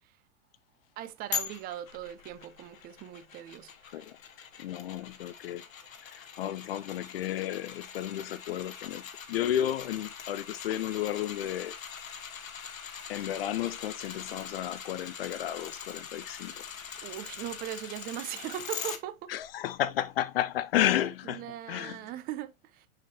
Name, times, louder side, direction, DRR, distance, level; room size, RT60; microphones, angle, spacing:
voice 1, 1.0-4.0 17.0-19.3 21.2-22.9, right 12 dB, 20° right, 0.6 m, -39 dB
sound 1, 1.3-19.0 19.4-19.5, left 7 dB, 70° left, 1.3 m, -42 dB
voice 2, 4.6-5.6 6.1-9.0 9.3-11.7 13.1-16.6 19.3-22.0, left 12 dB, 45° left, 0.5 m, -32 dB
6.4 x 6.2 x 2.7 m
figure-of-eight pair, 100°, 42 cm